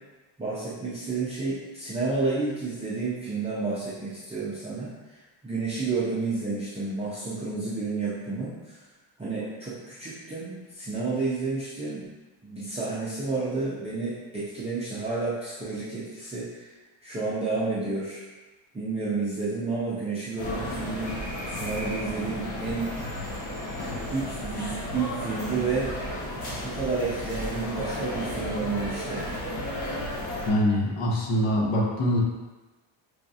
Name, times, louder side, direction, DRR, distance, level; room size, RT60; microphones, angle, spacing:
voice 1, 0.4-8.8 9.2-12.0 12.4-16.7 17.0-18.2 18.7-21.1 21.5-22.9 24.1-25.9 26.6-29.3, right 3 dB, 15° right, -10 dB, 0.3 m, -30 dB
sound 1, 20.4-30.5, left 1 dB, 50° left, 1.1 m, -33 dB
voice 2, 30.5-32.2, equal, 90° left, -2 dB, 1.0 m, -24 dB
4.7 x 2.3 x 2.7 m, 1.2 s
cardioid pair, 165°, 49 cm